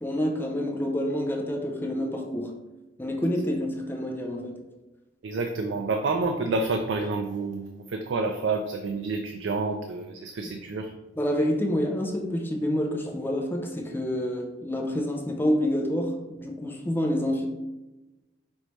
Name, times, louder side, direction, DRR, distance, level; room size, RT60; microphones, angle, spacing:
voice 1, 0.0-2.6 3.0-4.6 11.2-17.5, equal, 10° left, 1 dB, 0.5 m, -28 dB
voice 2, 5.2-10.9, right 3 dB, 85° right, 5 dB, 0.4 m, -29 dB
5.4 x 3.1 x 3.0 m, 1.1 s
head